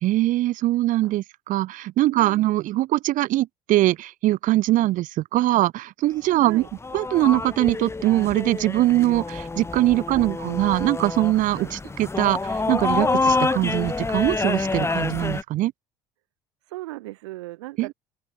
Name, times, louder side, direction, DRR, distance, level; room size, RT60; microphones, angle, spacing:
voice 1, 0.0-6.6 6.9-15.7 17.8-17.9, right 16 dB, 65° right, 4.4 m, -22 dB
voice 2, 2.1-2.5 6.4-6.7 10.1-10.2 11.6-11.7 16.7-17.9, right 19 dB, 85° right, 6.4 m, -37 dB
sound 1, 6.6-15.4, left 3 dB, 20° left, 1.8 m, -27 dB
open air
hypercardioid pair, 70°, 14 cm